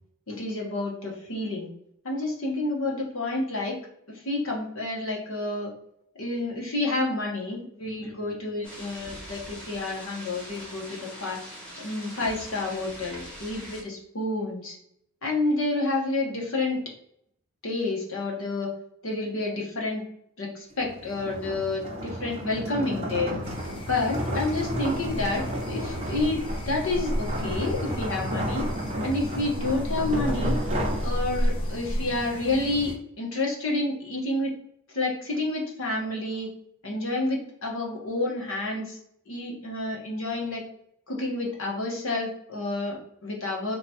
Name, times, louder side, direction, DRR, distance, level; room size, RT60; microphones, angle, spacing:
voice 1, 0.3-1.7 2.0-3.8 4.1-5.7 6.2-11.4 11.8-14.8 15.2-16.8 17.6-18.7 19.0-20.0 20.4-23.3 23.9-25.4 25.7-26.4 26.7-28.7 29.0-30.6 31.0-34.5 34.9-36.5 36.8-39.0 39.3-40.6 41.1-43.7, left 2 dB, 65° left, -1 dB, 1.0 m, -29 dB
sound 1, 8.6-13.8, equal, 5° left, 1.0 m, -42 dB
sound 2, 20.7-31.7, equal, 30° right, 0.7 m, -32 dB
sound 3, 23.4-32.9, equal, 25° left, 0.5 m, -32 dB
2.9 x 2.3 x 4.1 m, 0.73 s
head